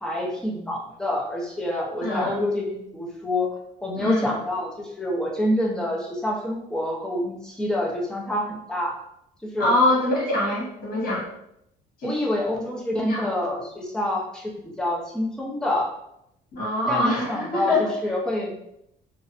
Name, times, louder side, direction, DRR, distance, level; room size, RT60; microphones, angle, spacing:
voice 1, 0.0-3.5 3.8-9.0 9.4-9.7 12.0-14.5 14.8-15.9 16.9-17.8 18.0-18.6, left 1 dB, 5° left, -3 dB, 0.6 m, -27 dB
voice 2, 2.0-2.4 4.0-4.3 9.6-11.2 12.0-12.2 13.0-13.3 16.5-17.9, left 1 dB, 60° left, -4 dB, 1.3 m, -24 dB
2.5 x 2.1 x 2.5 m, 0.78 s
cardioid pair, 110°, 17 cm